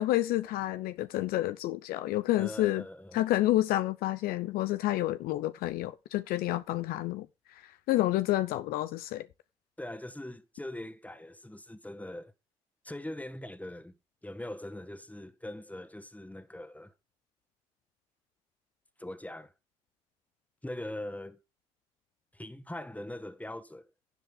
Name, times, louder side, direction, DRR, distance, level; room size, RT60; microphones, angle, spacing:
voice 1, 0.0-2.8 3.1-9.3, left 15 dB, 70° left, 0.5 m, -29 dB
voice 2, 2.4-3.2 9.8-12.3 12.8-14.0 14.2-16.9 19.0-19.5 20.6-21.4 22.3-23.9, left 1 dB, 10° left, 1.8 m, -41 dB
12.5 x 7.8 x 3.7 m
hypercardioid pair, 40°, 16 cm